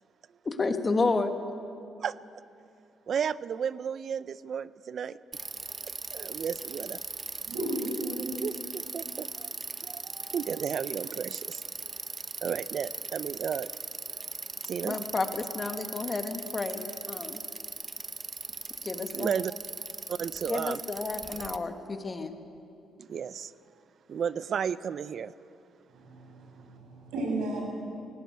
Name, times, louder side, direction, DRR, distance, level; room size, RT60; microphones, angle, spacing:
voice 1, 0.4-1.3 14.8-17.4 18.8-19.3 20.5-22.3, left 3 dB, 30° left, 1.7 m, -31 dB
voice 2, 3.1-5.2 6.1-7.0 8.4-9.5 9.8-11.6 12.4-13.7 14.7-15.0 19.1-19.5 20.1-20.8 23.0-23.5 24.1-25.6, right 7 dB, 55° right, 0.5 m, -33 dB
Bicycle, 5.3-21.6, right 4 dB, 30° right, 0.8 m, -39 dB
voice 3, 7.5-8.3 25.9-27.6, right 1 dB, 85° right, 6.8 m, -34 dB
17.5 x 16.0 x 9.3 m
cardioid pair, 90°, 0 cm